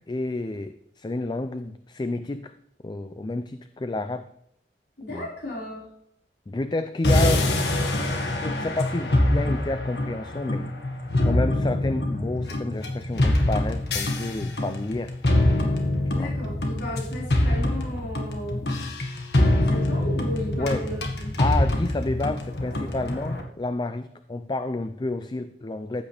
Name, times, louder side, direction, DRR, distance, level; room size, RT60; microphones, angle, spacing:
voice 1, 0.1-2.5 2.8-4.3 5.1-5.3 6.5-7.5 7.9-8.1 8.4-10.7 11.2-15.1 16.1-16.3 20.6-20.8 21.4-26.0, left 2 dB, 25° left, 10 dB, 0.4 m, -30 dB
voice 2, 5.0-5.9 16.1-18.9 19.6-21.3, left 1 dB, 85° left, -5 dB, 5.0 m, -35 dB
China Loop, 7.0-23.4, left 1 dB, 70° left, 1.8 m, -24 dB
15.0 x 8.6 x 3.4 m, 0.74 s
head